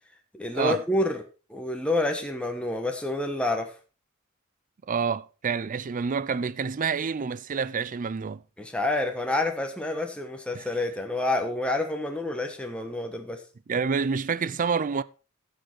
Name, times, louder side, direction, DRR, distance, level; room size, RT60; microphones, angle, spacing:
voice 1, 0.3-1.2 1.5-3.7 8.6-13.4, left 2 dB, 5° left, 1.2 m, -28 dB
voice 2, 4.9-8.4 10.5-10.7 13.7-15.0, right 5 dB, 40° right, 0.5 m, -28 dB
15.0 x 6.6 x 4.4 m
head